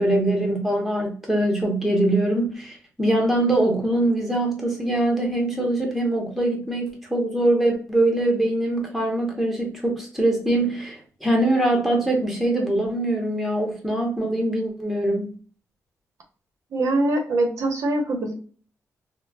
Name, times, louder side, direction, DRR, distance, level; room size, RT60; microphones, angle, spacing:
voice 1, 0.0-15.3, right 1 dB, ahead, 0 dB, 0.8 m, -23 dB
voice 2, 16.7-18.3, right 2 dB, 70° right, 3 dB, 0.8 m, -23 dB
3.8 x 2.1 x 2.3 m, 0.41 s
wide cardioid pair, 160°, 6 cm